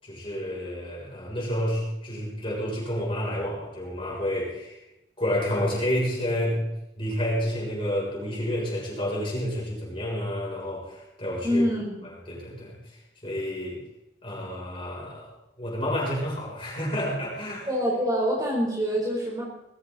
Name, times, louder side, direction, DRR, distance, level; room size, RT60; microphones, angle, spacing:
voice 1, 0.0-4.8 5.2-6.6 7.0-11.6 12.3-13.8 14.2-15.3 15.6-17.7, equal, 30° left, -4 dB, 7.0 m, -30 dB
voice 2, 11.4-12.1 17.6-19.4, equal, 20° right, -3 dB, 4.1 m, -25 dB
20.5 x 15.5 x 4.1 m, 0.89 s
head